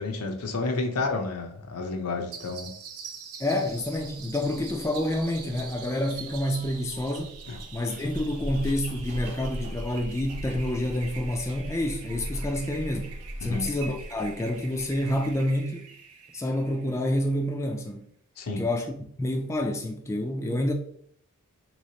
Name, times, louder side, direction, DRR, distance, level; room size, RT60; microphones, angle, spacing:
voice 1, 0.0-2.7 7.5-7.6 13.4-13.7 18.4-18.6, left 3 dB, 80° left, 0.6 m, -30 dB
sound 1, 2.3-17.5, right 6 dB, 70° right, 0.5 m, -45 dB
voice 2, 3.4-7.3 7.7-15.9 16.3-18.1 18.5-18.9 19.2-20.7, left 1 dB, 15° left, 0.3 m, -28 dB
Zipper (clothing), 3.6-15.3, equal, 30° right, 0.8 m, -39 dB
3.2 x 3.1 x 2.7 m
head